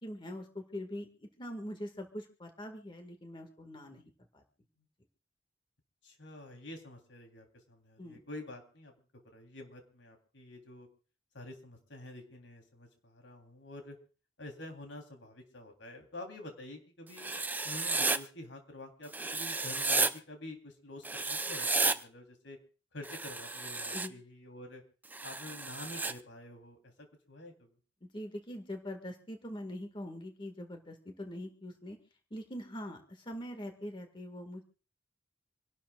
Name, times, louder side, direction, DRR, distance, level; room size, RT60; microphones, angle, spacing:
voice 1, 0.0-4.4 8.0-8.2 23.9-24.1 28.0-32.0 32.3-34.6, left 1 dB, 25° left, 4 dB, 1.9 m, -43 dB
voice 2, 6.0-8.9 9.3-10.9 11.3-14.0 14.4-17.3 17.6-22.6 22.9-24.8 25.2-27.7, left 1 dB, 85° left, 4 dB, 3.6 m, -48 dB
Writing, 17.2-18.2 19.1-20.1 21.0-22.0 23.0-24.1 25.1-26.1, right 3 dB, 10° right, 0.7 m, -32 dB
27.0 x 12.0 x 2.4 m, 0.38 s
head